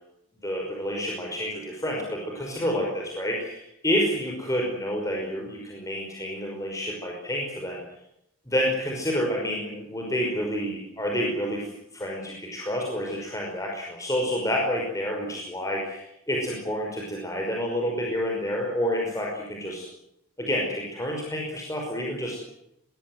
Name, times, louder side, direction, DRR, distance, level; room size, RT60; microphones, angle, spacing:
voice 1, 0.4-7.8 8.5-19.9 20.4-22.4, equal, 15° left, 0 dB, 5.4 m, -29 dB
25.5 x 20.0 x 8.0 m, 0.80 s
head